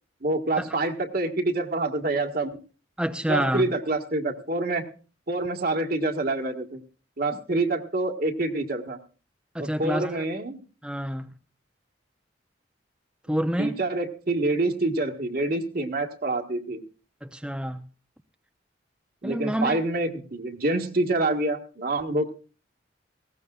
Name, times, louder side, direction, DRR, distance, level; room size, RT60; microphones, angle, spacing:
voice 1, 0.2-2.6 3.3-4.9 5.3-6.8 7.2-9.0 9.6-10.6 13.4-16.8 19.2-22.4, right 2 dB, 55° right, 1.6 m, -27 dB
voice 2, 3.0-3.7 9.5-10.2 10.8-11.3 13.3-13.8 17.2-17.8 19.2-19.8, equal, 5° right, 0.6 m, -28 dB
19.0 x 16.5 x 2.4 m
head